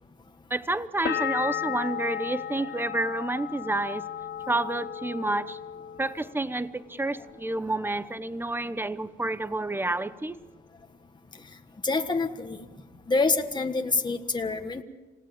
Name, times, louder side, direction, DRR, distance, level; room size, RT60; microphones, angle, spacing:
voice 1, 0.5-4.0 4.5-5.6 6.0-10.4, right 2 dB, 10° right, 1.0 m, -29 dB
sound 1, 1.1-6.7 7.0-7.7, left 9 dB, 55° left, 2.5 m, -35 dB
voice 2, 11.8-12.6 13.1-14.8, left 3 dB, 20° left, 1.6 m, -26 dB
27.5 x 17.5 x 7.3 m
cardioid pair, 90°, 20 cm